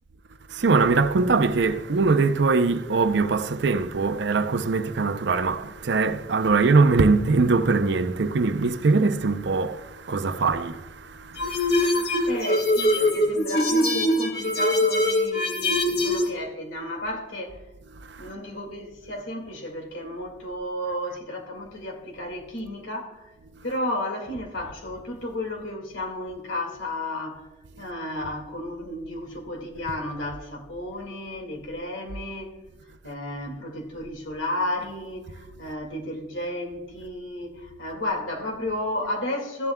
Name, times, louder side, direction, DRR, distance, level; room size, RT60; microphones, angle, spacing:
voice 1, 0.5-12.4 18.0-18.3 27.8-27.9, right 4 dB, 60° right, 0.5 m, -22 dB
sound 1, 11.4-16.3, left 1 dB, 55° left, 1.7 m, -22 dB
voice 2, 12.2-17.6 18.2-23.3 23.6-27.5 27.8-32.5 33.0-39.7, left 1 dB, 75° left, 2.1 m, -33 dB
14.0 x 10.5 x 2.2 m
head